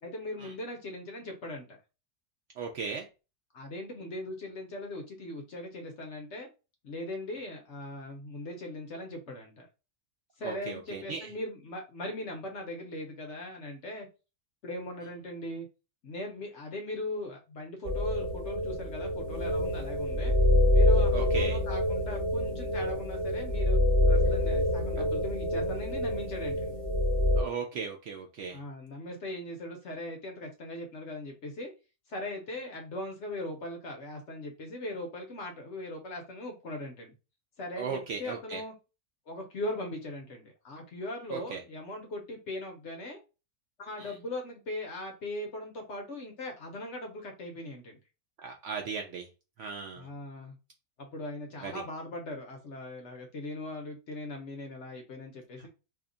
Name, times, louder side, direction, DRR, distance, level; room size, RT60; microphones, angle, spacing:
voice 1, 0.0-1.8 3.5-6.5 6.8-9.7 10.4-14.1 14.6-15.7 16.0-20.3 20.7-23.8 24.1-26.7 28.5-31.7 32.1-37.1 37.6-38.7 39.3-43.2 43.8-48.0 50.0-50.6 51.0-55.7, left 1 dB, 55° left, 2 dB, 0.9 m, -39 dB
voice 2, 2.6-3.1 10.4-11.3 21.1-21.6 27.4-28.6 37.8-38.6 41.3-41.6 44.0-44.2 48.4-49.3 49.6-50.1 51.6-51.8 55.6-55.7, right 6 dB, 65° right, 2 dB, 0.7 m, -37 dB
sound 1, 17.8-27.4, left 1 dB, 25° right, 0.8 m, -26 dB
2.8 x 2.2 x 3.7 m, 0.30 s
omnidirectional pair, 1.6 m